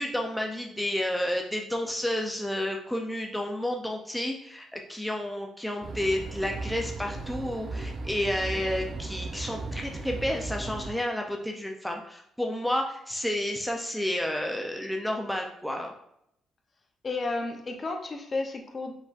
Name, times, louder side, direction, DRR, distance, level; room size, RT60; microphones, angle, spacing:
voice 1, 0.0-15.9, left 1 dB, 5° left, 1 dB, 0.5 m, -31 dB
sound 1, 5.8-10.9, right 3 dB, 50° right, 0.6 m, -36 dB
voice 2, 17.0-18.9, left 3 dB, 35° left, 4 dB, 0.7 m, -32 dB
5.0 x 3.8 x 2.5 m, 0.75 s
cardioid pair, 90°, 0 cm